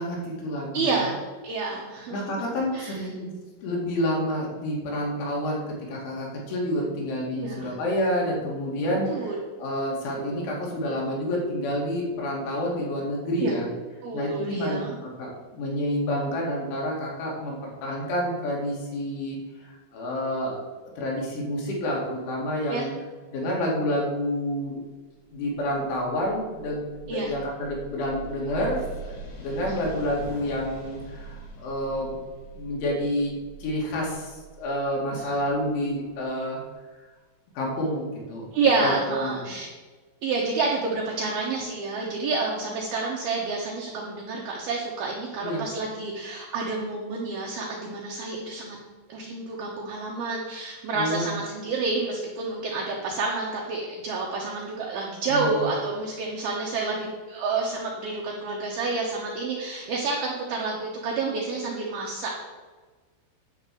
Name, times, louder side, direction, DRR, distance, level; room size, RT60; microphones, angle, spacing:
voice 1, 0.0-1.0 2.1-3.3 3.6-9.3 9.6-13.7 14.1-19.4 19.9-20.6 21.0-22.9 23.3-24.8 25.3-32.2 32.6-33.3 33.6-36.6 37.6-38.5 38.8-39.4 45.4-45.6 50.9-51.3 55.3-55.7, equal, 70° left, -2 dB, 4.5 m, -29 dB
voice 2, 0.7-2.4 2.7-3.1 7.4-7.8 9.1-9.4 10.2-10.5 13.4-13.5 14.0-14.9 22.7-22.9 27.1-27.3 29.6-29.9 35.1-35.4 38.5-39.7 40.2-48.8 49.1-57.0 57.3-62.4, right 3 dB, 80° right, -2 dB, 2.2 m, -29 dB
sound 1, 26.4-36.1, right 3 dB, 55° left, 2.4 m, -42 dB
10.5 x 4.1 x 7.6 m, 1.3 s
omnidirectional pair, 5.7 m